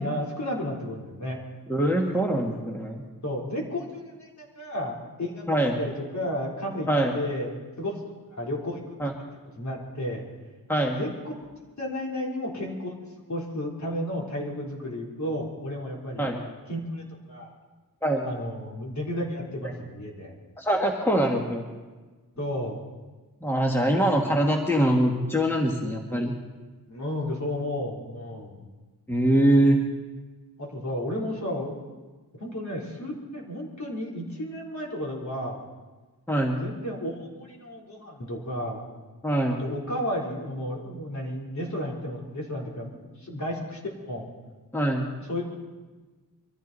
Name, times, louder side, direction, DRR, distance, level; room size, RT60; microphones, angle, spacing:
voice 1, 0.0-1.4 3.2-8.0 8.3-8.8 9.6-10.2 10.9-11.5 11.8-16.3 16.7-17.5 18.2-20.3 22.4-22.8 26.9-28.6 30.6-31.8 32.3-35.6 36.6-38.8 39.6-44.3 45.3-45.6, left 1 dB, 50° left, -2 dB, 3.5 m, -33 dB
voice 2, 1.7-3.0 5.5-5.8 6.9-7.2 9.0-9.1 10.7-11.0 16.2-16.4 18.0-18.3 20.6-21.6 23.4-26.3 29.1-29.8 36.3-36.6 39.2-39.6 44.7-45.1, right 1 dB, 5° left, 0 dB, 1.5 m, -23 dB
23.5 x 14.0 x 4.0 m, 1.3 s
wide cardioid pair, 125°, 35 cm